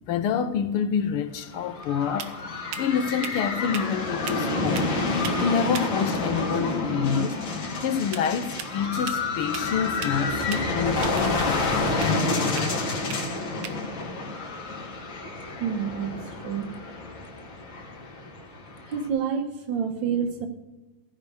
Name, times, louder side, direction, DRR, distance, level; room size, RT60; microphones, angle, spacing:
voice 1, 0.1-5.0 5.4-7.4 7.8-11.7, left 7 dB, 80° left, 1.7 m, -27 dB
sound 1, 0.9-15.6, right 8 dB, 90° right, 1.9 m, -43 dB
sound 2, 1.4-19.1, left 3 dB, 60° left, 2.3 m, -29 dB
voice 2, 15.6-16.1 16.4-16.7 18.9-20.5, right 7 dB, 65° right, 1.7 m, -28 dB
14.5 x 5.1 x 7.9 m
omnidirectional pair, 2.4 m